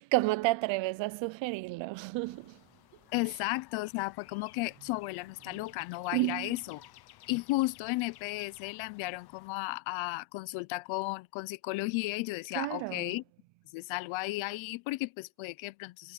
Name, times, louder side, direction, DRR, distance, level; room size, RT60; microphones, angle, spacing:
voice 1, 0.0-2.6 6.1-6.6 12.5-13.2, right 20 dB, 70° right, 0.8 m, -31 dB
sound 1, 2.2-9.5, left 14 dB, 55° left, 1.1 m, -56 dB
voice 2, 3.1-6.8 7.3-13.2 13.7-16.1, left 22 dB, 80° left, 0.9 m, -34 dB
cardioid pair, 125°, 46 cm